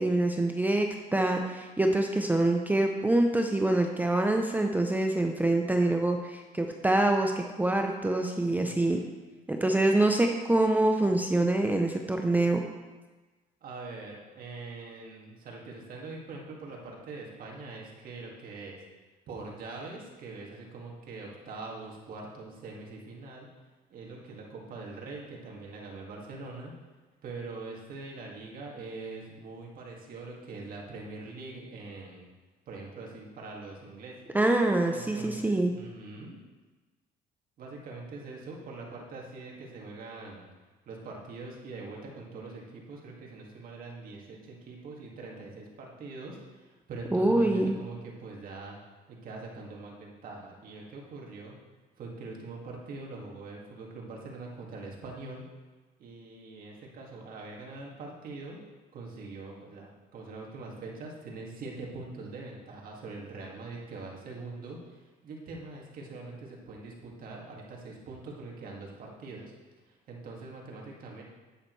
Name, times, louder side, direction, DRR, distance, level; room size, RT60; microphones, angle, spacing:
voice 1, 0.0-9.0 9.5-12.6 34.3-35.7 47.1-47.8, right 2 dB, 10° right, 3 dB, 0.6 m, -25 dB
voice 2, 8.4-9.2 13.6-18.8 19.3-23.5 23.9-26.7 27.2-32.3 32.7-34.1 34.9-36.4 37.6-40.5 40.9-48.8 49.2-51.5 52.0-55.4 56.0-58.6 58.9-69.5 69.9-71.2, right 3 dB, 60° right, -2 dB, 2.1 m, -43 dB
9.0 x 8.7 x 3.2 m, 1.3 s
cardioid pair, 110°, 17 cm